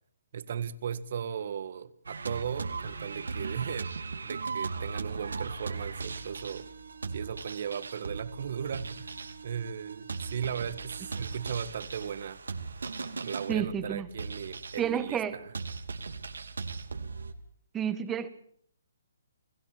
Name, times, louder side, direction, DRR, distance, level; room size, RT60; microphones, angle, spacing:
voice 1, 0.3-3.9 4.2-6.7 7.1-9.1 9.4-12.4 13.2-15.5, right 8 dB, 55° right, 1.6 m, -37 dB
sound 1, 2.1-17.3, right 4 dB, 85° right, 2.9 m, -38 dB
voice 2, 13.5-14.1 14.8-15.4 17.7-18.3, right 8 dB, 15° right, 1.7 m, -30 dB
30.0 x 16.5 x 7.4 m
hypercardioid pair, 150°, 0 cm